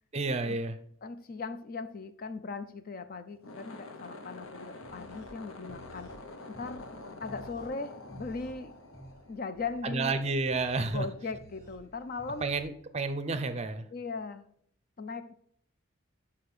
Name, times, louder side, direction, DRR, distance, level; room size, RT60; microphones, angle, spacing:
voice 1, 0.1-0.8 9.8-11.0 12.4-13.8, right 3 dB, 30° right, 0.5 m, -30 dB
voice 2, 1.0-6.1 6.5-6.9 7.2-8.8 9.3-10.2 10.9-12.6 13.9-14.4 15.0-15.3, left 4 dB, 45° left, 0.4 m, -39 dB
sound 1, 3.3-9.8, left 2 dB, 85° left, 0.8 m, -47 dB
sound 2, 4.4-12.6, right 1 dB, 15° left, 1.7 m, -53 dB
5.7 x 5.1 x 6.1 m
head